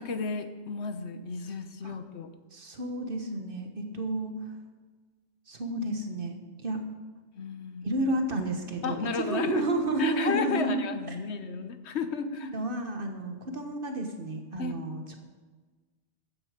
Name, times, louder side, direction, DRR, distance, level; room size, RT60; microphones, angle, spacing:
voice 1, 0.0-2.3 7.4-7.9 8.8-9.6 10.0-12.5 14.6-14.8, left 5 dB, 70° left, 9 dB, 1.2 m, -33 dB
voice 2, 2.5-4.5 5.5-6.8 7.8-10.8 11.1-11.2 12.2-15.2, right 2 dB, 50° right, 5 dB, 1.6 m, -31 dB
14.5 x 9.9 x 5.1 m, 1.3 s
omnidirectional pair, 1.2 m